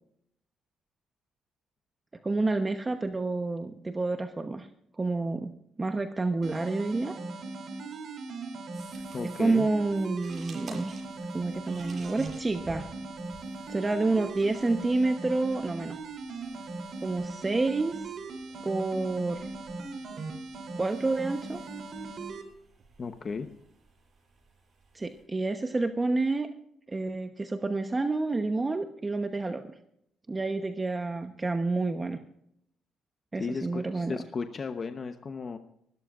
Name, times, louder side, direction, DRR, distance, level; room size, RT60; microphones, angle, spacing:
voice 1, 2.2-4.7 5.0-5.5 5.8-7.1 9.4-10.9 11.3-12.9 13.7-16.0 17.0-18.0 18.6-19.5 20.8-21.6 24.9-26.5 26.9-29.6 30.3-32.2 33.3-34.1, right 3 dB, 25° right, 6 dB, 1.0 m, -29 dB
sound 1, 6.4-22.4, right 3 dB, 60° right, 3.3 m, -39 dB
sound 2, 8.7-25.2, right 3 dB, 45° right, 6.7 m, -54 dB
voice 2, 9.1-9.7 23.0-23.5 33.3-35.6, left 5 dB, 40° left, 7 dB, 0.9 m, -35 dB
25.5 x 13.0 x 2.5 m, 0.73 s
cardioid pair, 90°, 0 cm